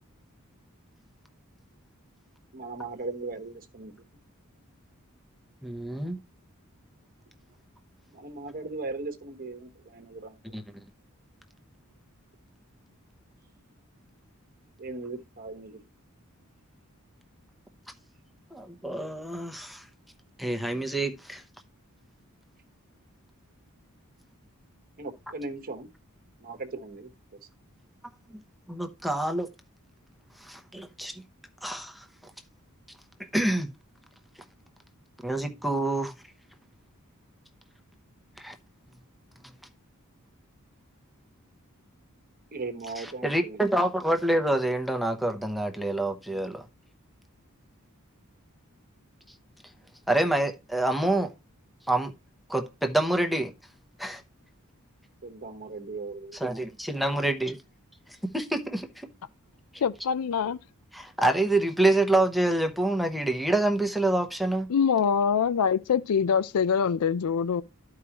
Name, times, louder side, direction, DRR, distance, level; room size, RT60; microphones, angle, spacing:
voice 1, 2.5-3.9 8.1-10.4 14.8-15.8 25.0-25.9 26.4-27.1 42.5-43.6 55.2-56.8, right 3 dB, 40° right, 1.2 m, -38 dB
voice 2, 5.6-6.2 10.5-10.6 18.5-19.8 20.4-21.4 28.7-29.5 30.4-31.2 31.6-32.0 33.3-33.7 35.2-36.1 38.4-38.5 43.0-46.7 50.1-51.3 51.9-52.1 52.5-53.5 54.0-54.2 56.4-57.6 58.3-59.1 60.9-64.7, right 1 dB, ahead, 0.8 m, -27 dB
voice 3, 59.8-60.6 64.7-67.6, left 6 dB, 85° left, 0.4 m, -24 dB
12.5 x 4.8 x 2.9 m
head